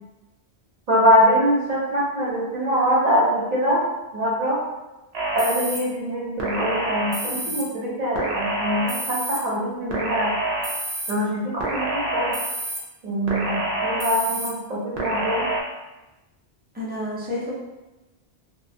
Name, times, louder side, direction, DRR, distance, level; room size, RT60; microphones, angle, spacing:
voice 1, 0.9-3.8 4.1-4.6 5.3-10.3 11.1-12.3 13.0-15.5, equal, 45° right, -6 dB, 0.8 m, -23 dB
sound 1, 5.1-5.8 6.4-7.6 8.1-9.4 9.9-11.1 11.6-12.8 13.3-14.5 15.0-15.6, right 2 dB, 75° right, 0.8 m, -27 dB
voice 2, 16.7-17.5, left 1 dB, 15° right, -6 dB, 0.4 m, -29 dB
2.3 x 2.2 x 2.6 m, 1.0 s
omnidirectional pair, 1.1 m